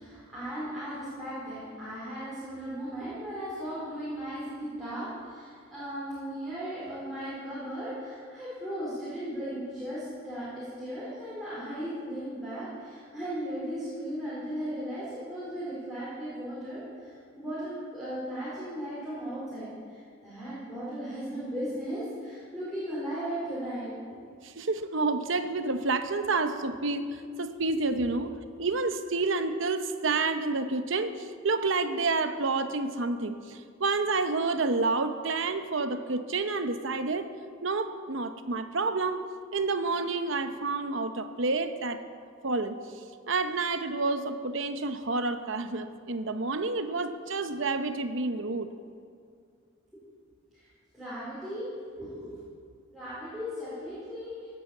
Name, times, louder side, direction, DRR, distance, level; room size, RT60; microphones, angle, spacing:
voice 1, 0.0-24.2 49.9-50.0 50.5-51.7 51.9-52.4 52.9-54.5, equal, ahead, -11 dB, 4.7 m, -37 dB
voice 2, 24.4-37.3 37.6-39.2 39.5-42.0 42.4-42.8 43.3-48.7, right 3 dB, 65° right, 9 dB, 0.9 m, -29 dB
17.0 x 8.7 x 7.2 m, 2.3 s
head